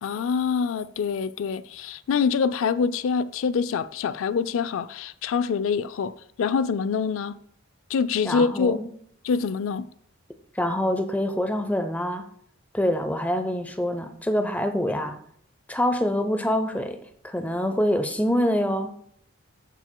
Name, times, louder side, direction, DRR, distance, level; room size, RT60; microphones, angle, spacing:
voice 1, 0.0-7.3 7.9-8.8 9.2-9.9, left 6 dB, 75° left, 0.4 m, -25 dB
voice 2, 8.2-8.9 10.6-12.3 12.7-15.2 15.7-17.0 17.2-18.9, equal, 5° left, 0.5 m, -25 dB
14.5 x 6.0 x 2.2 m
head